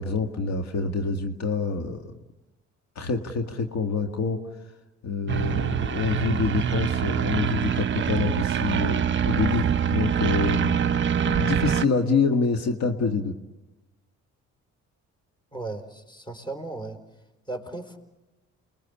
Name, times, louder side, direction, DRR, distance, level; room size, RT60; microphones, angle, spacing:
voice 1, 0.0-2.2 3.0-4.4 5.0-13.4, left 4 dB, 65° left, 4 dB, 2.0 m, -27 dB
sound 1, 5.3-11.8, right 8 dB, 40° right, 0.8 m, -24 dB
voice 2, 15.5-17.0 17.5-18.0, right 2 dB, 15° left, 7 dB, 4.2 m, -36 dB
29.0 x 22.0 x 8.5 m, 1.1 s
cardioid pair, 90°, 30 cm